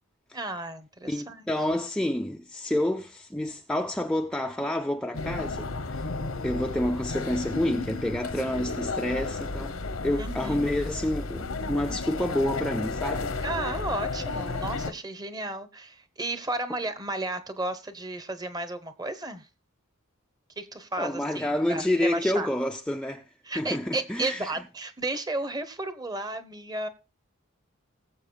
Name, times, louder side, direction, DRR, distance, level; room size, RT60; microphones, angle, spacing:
voice 1, 0.3-1.5 10.2-10.7 13.4-19.5 20.6-22.5 23.4-26.9, right 2 dB, 20° right, 1.0 m, -33 dB
voice 2, 1.1-6.0 6.4-9.8 10.0-13.4 21.0-23.3 23.5-24.6, left 1 dB, 5° left, 0.5 m, -28 dB
sound 1, 5.1-14.9, left 3 dB, 85° left, 1.1 m, -33 dB
20.5 x 7.6 x 2.3 m
head